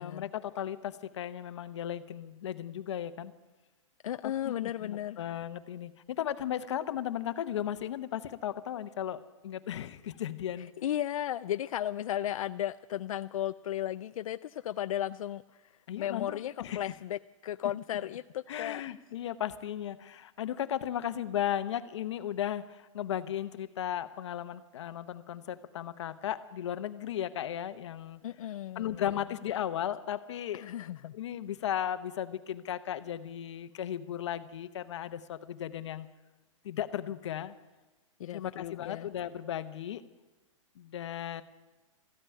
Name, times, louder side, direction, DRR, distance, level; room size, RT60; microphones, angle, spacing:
voice 1, 0.0-3.3 4.2-10.7 15.9-16.8 18.5-28.2 28.8-30.6 31.1-36.1 36.6-37.5 38.3-40.0 40.8-41.4, left 10 dB, 60° left, 12 dB, 0.9 m, -36 dB
voice 2, 4.0-5.2 10.6-18.8 28.2-29.0 30.5-31.1 38.2-39.1, left 11 dB, 90° left, 12 dB, 0.4 m, -35 dB
14.0 x 9.0 x 9.8 m, 1.2 s
hypercardioid pair, 170°, 17 cm